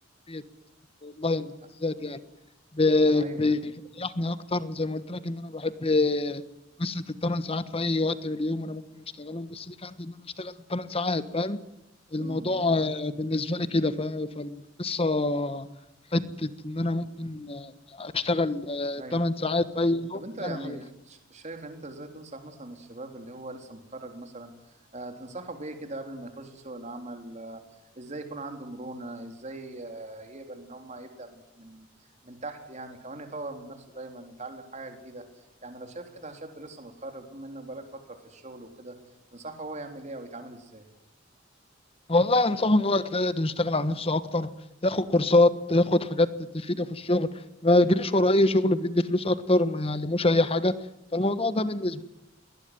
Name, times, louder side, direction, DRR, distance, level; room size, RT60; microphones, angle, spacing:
voice 1, 1.0-1.5 1.8-2.2 2.7-3.6 4.0-6.4 6.8-11.6 12.1-15.7 16.1-20.8 42.1-44.5 44.8-47.3 47.6-50.7 51.1-52.0, left 2 dB, 30° left, 13 dB, 1.3 m, -26 dB
voice 2, 3.2-3.6 12.2-12.6 19.0-19.2 20.1-27.6 28.0-31.9 32.2-39.0 39.3-40.9, right 2 dB, 35° right, 5 dB, 3.6 m, -41 dB
21.5 x 19.5 x 9.6 m, 0.86 s
head